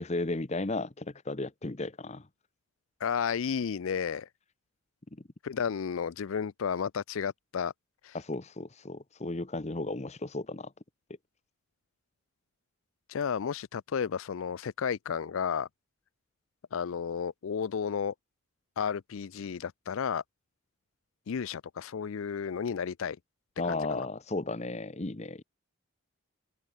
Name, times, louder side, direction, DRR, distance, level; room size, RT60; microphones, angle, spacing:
voice 1, 0.0-2.2 5.1-5.2 8.1-10.7 23.6-25.4, left 2 dB, 30° left, 0.9 m, -34 dB
voice 2, 3.0-4.3 5.4-7.7 8.0-8.2 13.1-15.7 16.7-18.1 18.8-20.2 21.3-23.2 23.7-24.1, left 7 dB, 70° left, 0.4 m, -32 dB
head